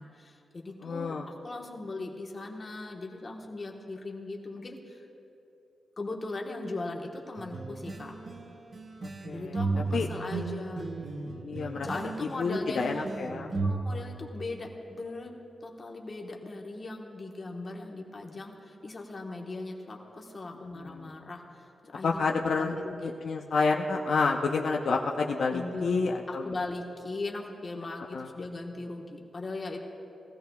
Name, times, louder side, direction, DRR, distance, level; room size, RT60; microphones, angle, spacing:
voice 1, 0.0-5.0 6.0-8.1 9.3-10.9 11.8-13.1 13.6-15.3 15.6-23.1 25.5-29.8, left 2 dB, 30° left, 0 dB, 1.2 m, -39 dB
voice 2, 0.8-1.3 9.2-9.6 9.9-10.1 11.4-11.9 12.4-13.5 20.8-21.1 22.0-26.4 28.1-28.3, left 4 dB, 70° left, 0 dB, 0.6 m, -29 dB
sound 1, 7.4-13.7, right 3 dB, 40° right, 0.8 m, -34 dB
20.0 x 15.5 x 2.3 m, 2.9 s
wide cardioid pair, 175°, 0 cm